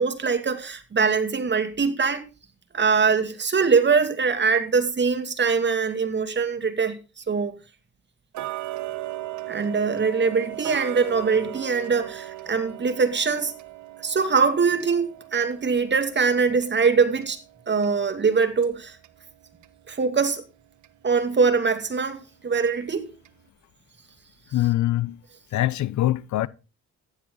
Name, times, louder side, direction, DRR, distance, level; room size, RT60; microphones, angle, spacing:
voice 1, 0.0-2.2 2.7-7.0 7.3-7.6 9.5-13.5 14.0-17.4 17.7-19.0 19.9-20.4 21.0-23.1, right 5 dB, 35° right, 2.5 m, -22 dB
Tick-tock, 8.3-19.2 19.6-19.7 20.2-20.3 20.8-20.9 21.5-21.6 22.0-22.1 22.7-22.8 23.3-23.4, right 16 dB, 70° right, 1.3 m, -38 dB
voice 2, 24.5-25.2 25.5-26.5, left 15 dB, 70° left, 0.8 m, -23 dB
15.0 x 10.5 x 4.0 m
cardioid pair, 90°, 30 cm